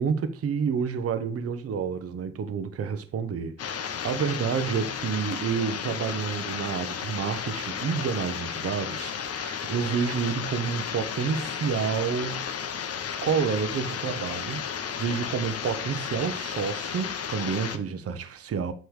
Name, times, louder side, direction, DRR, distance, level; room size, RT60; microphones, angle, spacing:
voice 1, 0.0-12.5 13.2-18.7, right 6 dB, 50° right, 0.9 m, -29 dB
sound 1, 3.6-17.8, left 7 dB, 55° left, 1.0 m, -33 dB
8.1 x 3.3 x 6.3 m
cardioid pair, 90°, 30 cm